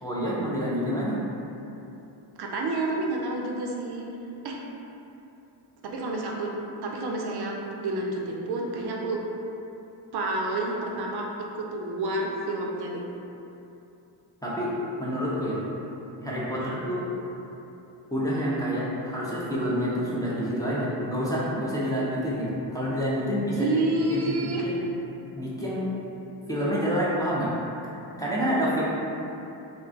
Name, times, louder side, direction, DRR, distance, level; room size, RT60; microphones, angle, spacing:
voice 1, 0.0-1.2 14.4-14.7 15.0-15.6 16.2-17.0 18.1-23.8 24.1-24.8 25.3-25.9 26.5-27.5 28.2-28.8, equal, 10° left, -8 dB, 0.4 m, -28 dB
voice 2, 2.4-4.1 4.4-4.6 5.8-6.5 6.8-7.6 7.8-9.2 10.1-11.3 11.5-13.0 16.6-16.7 23.5-24.7, right 2 dB, 60° right, -1 dB, 0.5 m, -29 dB
2.4 x 2.2 x 3.7 m, 2.9 s
cardioid pair, 100°, 45 cm